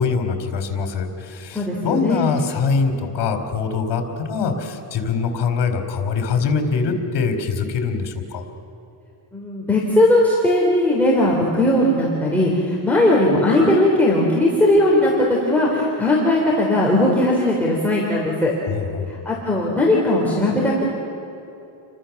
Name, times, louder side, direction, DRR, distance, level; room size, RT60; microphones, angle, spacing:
voice 1, 0.0-8.4 18.7-19.1, left 5 dB, 60° left, 6 dB, 3.8 m, -23 dB
voice 2, 1.5-2.3 9.3-18.5 19.1-20.9, left 1 dB, 5° left, -5 dB, 3.5 m, -18 dB
29.5 x 24.5 x 7.2 m, 2.9 s
cardioid pair, 180°, 48 cm